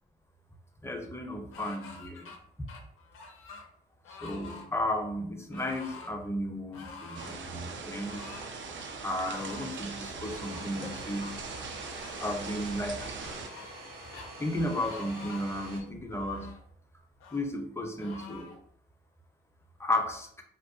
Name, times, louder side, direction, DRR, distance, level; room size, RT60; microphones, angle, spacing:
voice 1, 0.8-2.3 4.2-8.3 9.0-11.3 12.2-13.3 14.4-16.5 17.3-18.5 19.8-20.3, left 1 dB, 10° left, 3 dB, 0.6 m, -34 dB
sound 1, 1.5-2.4 2.7-3.7 4.0-4.7 5.5-6.1 6.7-7.4 8.0-8.5 9.1-9.8 10.4-11.3 11.9-12.4 13.0-13.9 14.1-14.3 14.8-15.6 16.1-16.6 17.2-17.4 18.0-18.6, left 4 dB, 85° left, 0.5 m, -47 dB
sound 2, 7.1-13.5, right 4 dB, 65° right, 0.5 m, -41 dB
Domestic sounds home sounds, 10.2-15.8, right 1 dB, 90° right, 0.8 m, -46 dB
2.7 x 2.1 x 2.5 m, 0.64 s
supercardioid pair, 55°, 21 cm